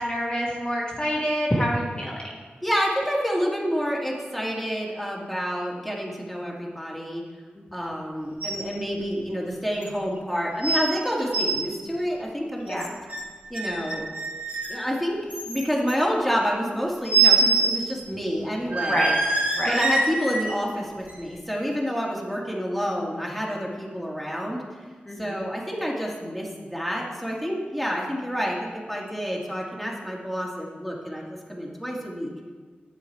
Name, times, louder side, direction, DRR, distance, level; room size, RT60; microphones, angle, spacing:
voice 1, 0.0-2.3 7.7-7.9 12.7-12.9 18.9-19.2 19.5-19.8 25.1-25.3, equal, 25° left, -4 dB, 1.5 m, -27 dB
voice 2, 2.6-7.2 7.7-12.9 13.5-14.0 14.7-19.0 19.7-24.6 25.2-32.3, equal, ahead, -3 dB, 2.0 m, -28 dB
sound 1, 8.4-8.7 9.0-9.1 9.8-9.9 10.6-10.9 11.2-11.6 12.7-13.2 13.5-14.8 15.3-15.9 17.0-17.8 18.1-18.2 18.7-20.5 21.1-21.2, right 4 dB, 40° right, 1.7 m, -24 dB
10.5 x 7.1 x 4.6 m, 1.5 s
wide cardioid pair, 85°, 4 cm